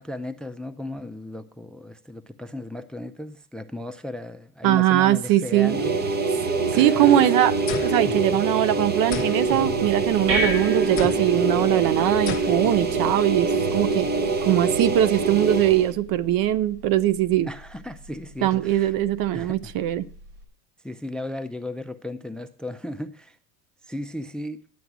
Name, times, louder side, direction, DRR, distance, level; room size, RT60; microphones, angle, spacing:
voice 1, 0.0-6.0 6.7-7.3 17.4-18.9 19.3-19.7 20.8-23.4 23.9-24.6, left 1 dB, ahead, 0.5 m, -35 dB
voice 2, 4.6-5.8 6.7-7.5 7.8-14.1 14.4-17.5 18.4-20.1, right 12 dB, 45° right, 0.7 m, -21 dB
sound 1, 5.5-15.9, right 4 dB, 20° right, 1.0 m, -24 dB
sound 2, 7.7-8.7 9.1-10.4 11.0-11.5 12.3-12.9, left 8 dB, 25° left, 0.8 m, -35 dB
sound 3, 9.9-20.4, right 1 dB, 75° right, 3.9 m, -36 dB
11.0 x 7.9 x 6.0 m
hypercardioid pair, 85°, 46 cm